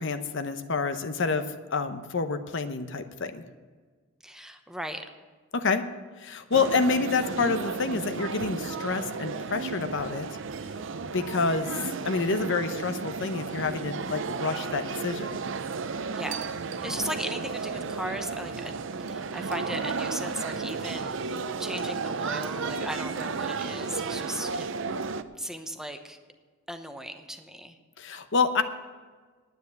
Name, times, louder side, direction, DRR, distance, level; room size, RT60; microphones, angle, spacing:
voice 1, 0.0-3.4 5.5-5.8 6.2-10.3 11.1-15.4 28.0-28.6, left 4 dB, 60° left, 9 dB, 0.8 m, -28 dB
voice 2, 4.2-5.0 16.1-16.5 16.8-24.7 25.4-26.2 26.7-27.8, equal, 5° right, 6 dB, 0.8 m, -37 dB
sound 1, 6.5-25.2, right 4 dB, 65° right, 0.6 m, -33 dB
10.0 x 9.4 x 8.1 m, 1.4 s
head